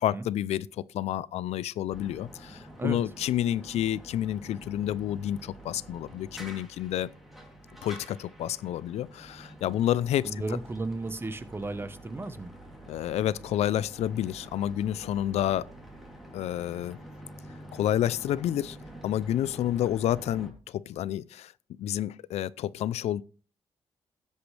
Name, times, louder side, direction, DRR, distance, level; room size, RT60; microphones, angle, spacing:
voice 1, 0.0-7.1 7.8-10.3 12.9-15.7 16.3-17.0 17.7-18.8 19.0-21.5 21.8-23.2, left 11 dB, 85° left, 0.4 m, -29 dB
sound 1, 1.9-20.5, right 1 dB, ahead, 2.9 m, -47 dB
voice 2, 10.2-12.5, right 2 dB, 20° right, 1.0 m, -34 dB
15.5 x 8.3 x 3.3 m
cardioid pair, 105°, 11 cm